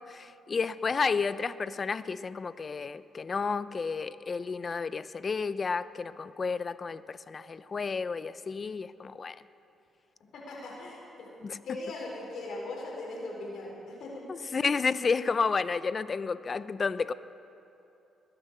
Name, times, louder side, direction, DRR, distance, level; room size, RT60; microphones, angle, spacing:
voice 1, 0.0-9.4 11.4-11.6 14.3-17.1, left 5 dB, 35° left, 15 dB, 0.5 m, -31 dB
voice 2, 10.3-11.3 11.6-14.2, left 2 dB, 70° left, -3 dB, 5.0 m, -39 dB
21.0 x 10.0 x 6.8 m, 2.9 s
cardioid pair, 90°, 0 cm